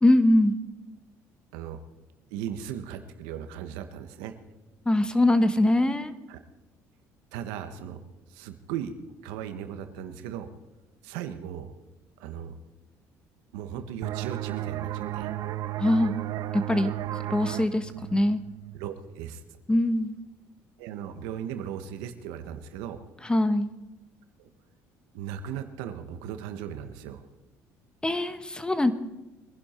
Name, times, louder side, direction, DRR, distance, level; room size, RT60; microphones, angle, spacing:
voice 1, 0.0-0.5 4.8-6.1 15.8-16.2 16.5-18.4 19.7-20.2 23.2-23.7 28.0-28.9, left 1 dB, 15° left, 11 dB, 1.2 m, -23 dB
voice 2, 2.3-4.3 6.3-6.4 7.3-8.0 8.3-8.9 9.2-10.5 11.0-11.7 12.2-12.5 13.5-15.3 18.7-19.4 20.8-23.0 24.4-24.5 25.1-27.2, right 9 dB, 85° right, 8 dB, 1.3 m, -37 dB
sound 1, 14.0-19.4, right 14 dB, 65° right, 0.7 m, -34 dB
23.0 x 11.0 x 4.5 m, 1.1 s
supercardioid pair, 85°, 7 cm